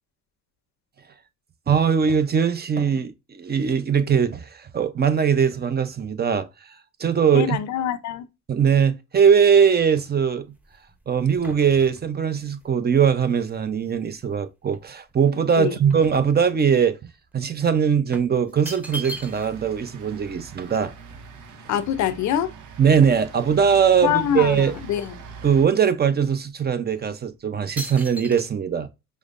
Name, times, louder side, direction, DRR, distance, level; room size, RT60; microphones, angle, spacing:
voice 1, 1.7-7.6 8.5-10.5 11.1-17.0 17.3-20.9 22.8-24.7 25.4-28.9, right 7 dB, 35° right, 0.6 m, -21 dB
voice 2, 7.3-8.3 15.6-15.7 21.7-22.5 24.0-25.2, left 10 dB, 70° left, 0.5 m, -24 dB
sound 1, 9.4-14.3 14.7-16.9 17.2-17.4 18.1-19.7 20.0-20.1 20.3-22.5 23.0-23.1 23.4-24.1 24.4-25.6 26.2-26.4 27.0-27.2 27.8-28.4, right 1 dB, 5° right, 0.8 m, -41 dB
sound 2, 18.8-25.7, right 5 dB, 75° right, 0.8 m, -42 dB
5.1 x 2.1 x 2.5 m
cardioid pair, 90°, 30 cm